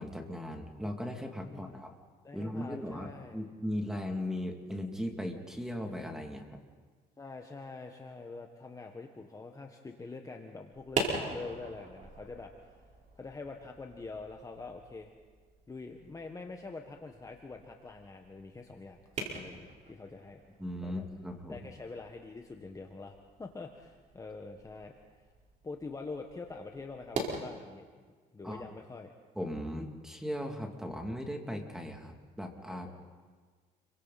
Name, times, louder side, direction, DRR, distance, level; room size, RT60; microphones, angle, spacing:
voice 1, 0.0-1.9 2.3-6.4 20.6-21.6 28.4-28.7 29.3-32.9, left 1 dB, 5° right, 3 dB, 2.8 m, -38 dB
voice 2, 1.5-1.8 2.2-3.4 7.2-12.8 13.2-15.1 15.7-20.4 20.8-21.0 21.5-24.9 25.6-27.8 28.3-29.1 32.7-33.0, left 3 dB, 20° left, 3 dB, 1.5 m, -45 dB
sound 1, 10.7-27.4, right 3 dB, 45° right, 4.7 m, -43 dB
30.0 x 24.0 x 4.3 m, 1.5 s
cardioid pair, 110°, 17 cm